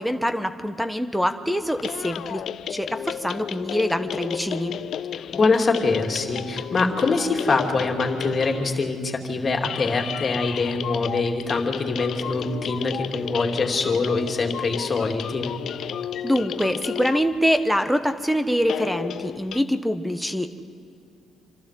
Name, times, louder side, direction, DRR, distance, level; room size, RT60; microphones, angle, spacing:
voice 1, 0.0-2.4 2.7-4.7 16.2-20.6, equal, ahead, 8 dB, 1.1 m, -24 dB
sound 1, 1.6-8.9 9.5-17.6 18.6-19.6, left 9 dB, 65° left, 0.5 m, -33 dB
voice 2, 5.3-15.5, left 3 dB, 40° left, 2 dB, 2.8 m, -24 dB
27.5 x 12.5 x 7.6 m, 2.5 s
cardioid pair, 85°, 0 cm